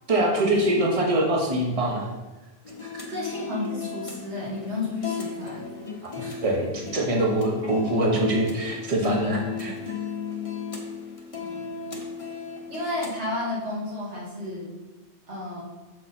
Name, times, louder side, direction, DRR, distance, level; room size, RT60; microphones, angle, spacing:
voice 1, 0.1-2.1 2.8-3.1 6.1-9.7, right 1 dB, 30° right, 0 dB, 1.1 m, -24 dB
sound 1, 2.6-13.2, left 6 dB, 30° left, 0.9 m, -35 dB
voice 2, 3.1-5.7 6.2-6.4 11.4-11.7 12.7-14.7 15.3-15.6, left 1 dB, 70° right, -5 dB, 2.3 m, -32 dB
6.5 x 5.4 x 4.3 m, 1.2 s
omnidirectional pair, 1.2 m